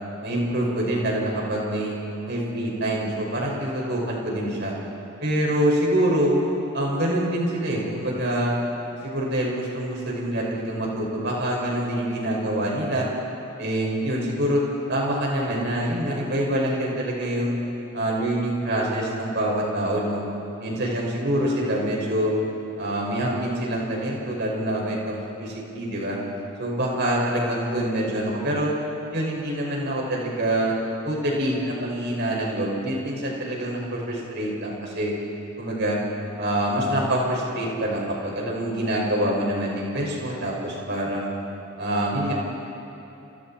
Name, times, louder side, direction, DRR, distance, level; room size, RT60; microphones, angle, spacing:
voice 1, 0.2-1.9 2.3-4.7 5.2-6.3 6.7-8.5 9.0-13.1 13.6-14.6 14.9-17.5 17.9-20.2 20.6-22.3 22.8-26.2 26.6-28.7 29.1-30.7 31.0-35.1 35.6-36.0 36.4-41.3 41.8-42.3, right 1 dB, 50° right, -2 dB, 6.0 m, -25 dB
29.5 x 28.5 x 4.5 m, 2.9 s
head